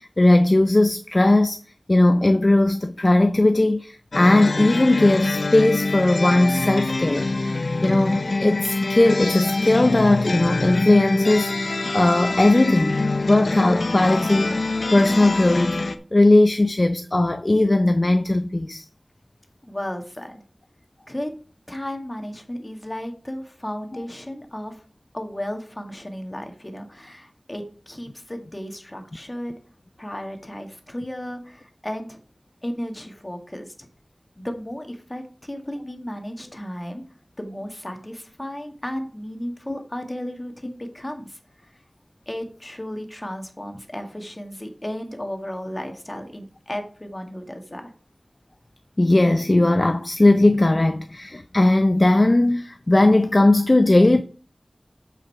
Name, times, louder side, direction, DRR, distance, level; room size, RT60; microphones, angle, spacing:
voice 1, 0.0-1.6 1.9-18.9 39.7-39.8 49.0-54.2, left 2 dB, 45° left, 0.5 m, -18 dB
sound 1, 4.1-16.0, left 3 dB, 85° left, 0.7 m, -25 dB
voice 2, 19.6-20.4 21.1-21.3 21.7-24.8 25.1-29.6 30.0-32.2 32.6-33.9 34.4-37.0 37.4-41.8 42.3-47.9, equal, 25° left, 1.9 m, -34 dB
8.2 x 5.7 x 4.7 m
wide cardioid pair, 50°, 0 cm